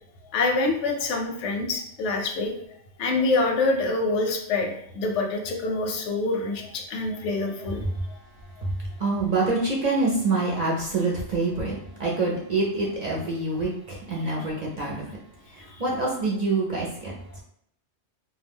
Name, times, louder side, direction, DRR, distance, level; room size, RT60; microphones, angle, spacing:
voice 1, 0.3-2.5 3.0-8.2 15.7-15.8, left 3 dB, 85° left, 2 dB, 0.9 m, -26 dB
voice 2, 9.0-11.7 12.0-15.0 15.6-17.1, right 3 dB, 50° right, -4 dB, 0.5 m, -26 dB
2.2 x 2.2 x 3.4 m, 0.72 s
omnidirectional pair, 1.2 m